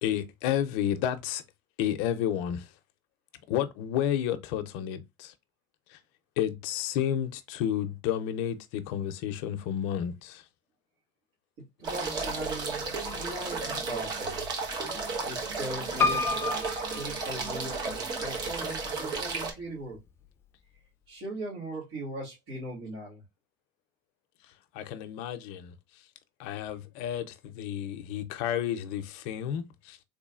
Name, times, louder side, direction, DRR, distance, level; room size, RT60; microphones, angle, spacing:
voice 1, 0.0-1.4 1.8-2.7 3.5-5.3 5.9-6.0 6.4-10.4 24.7-25.7 26.4-30.0, left 10 dB, 80° left, 0.5 m, -31 dB
voice 2, 11.6-14.5 15.2-20.0 21.1-23.2, right 2 dB, 80° right, 2.2 m, -39 dB
sound 1, 11.8-19.5, right 4 dB, 50° right, 1.1 m, -33 dB
Piano, 16.0-18.0 18.6-19.3 19.6-19.7 19.9-20.0, left 4 dB, 25° left, 0.5 m, -30 dB
3.8 x 3.0 x 2.4 m
cardioid pair, 135°, 9 cm